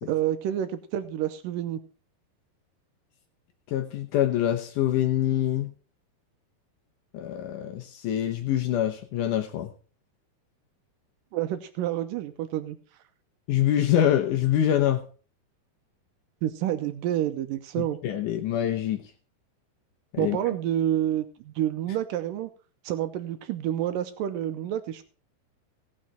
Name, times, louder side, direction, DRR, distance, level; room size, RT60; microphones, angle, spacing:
voice 1, 0.1-1.8 11.3-12.8 16.4-18.0 20.2-22.5 22.8-25.0, right 11 dB, 80° right, 9 dB, 2.0 m, -28 dB
voice 2, 3.7-5.7 7.1-9.7 13.5-15.0 17.8-19.0 20.1-20.4, left 11 dB, 80° left, 6 dB, 1.9 m, -25 dB
17.5 x 6.3 x 4.3 m, 0.38 s
omnidirectional pair, 4.7 m